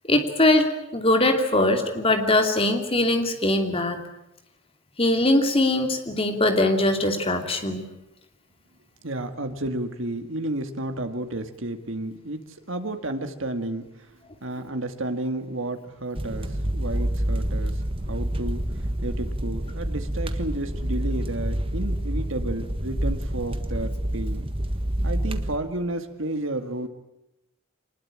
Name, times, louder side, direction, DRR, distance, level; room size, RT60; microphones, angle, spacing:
voice 1, 0.1-4.0 5.0-7.8, left 1 dB, 30° left, 5 dB, 2.8 m, -21 dB
voice 2, 9.0-12.4 12.7-13.9 14.4-17.7 18.1-18.7 19.0-24.5 25.0-26.9, right 1 dB, 70° right, 7 dB, 2.1 m, -31 dB
sound 1, 16.1-25.6, right 1 dB, 25° right, 1.5 m, -28 dB
24.0 x 20.5 x 8.8 m, 0.90 s
head